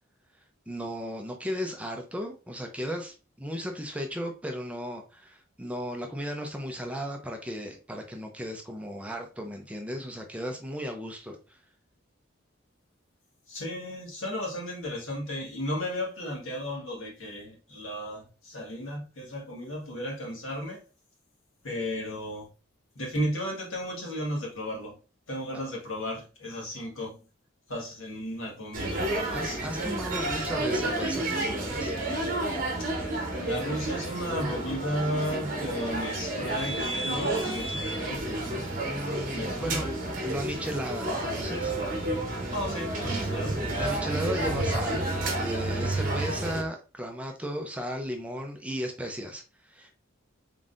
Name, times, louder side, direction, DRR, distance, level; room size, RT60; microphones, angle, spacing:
voice 1, 0.7-11.6 29.3-32.0 38.8-39.9 40.2-41.7 43.8-45.1 45.4-50.0, equal, 5° right, 0.5 m, -35 dB
voice 2, 13.5-20.8 21.6-22.5 22.9-24.9 25.3-27.2 27.7-29.6 32.8-32.9 33.4-38.6 39.3-39.9 42.5-43.7, equal, 80° left, 1.6 m, -34 dB
sound 1, 28.7-46.6, right 2 dB, 40° right, 1.0 m, -30 dB
3.9 x 3.7 x 2.5 m
head